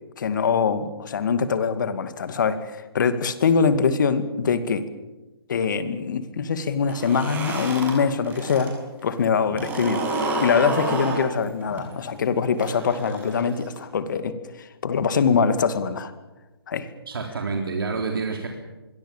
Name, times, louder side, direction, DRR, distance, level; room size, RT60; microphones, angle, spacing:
voice 1, 0.2-4.9 5.5-10.0 10.4-16.1 16.7-16.9, left 6 dB, 50° left, 11 dB, 2.4 m, -23 dB
sound 1, 6.8-8.7 9.0-13.8, right 2 dB, 15° right, 6.3 m, -30 dB
voice 2, 17.1-18.5, right 4 dB, 60° right, 2 dB, 3.8 m, -28 dB
25.0 x 23.5 x 7.4 m, 1.1 s
figure-of-eight pair, 145°, 13 cm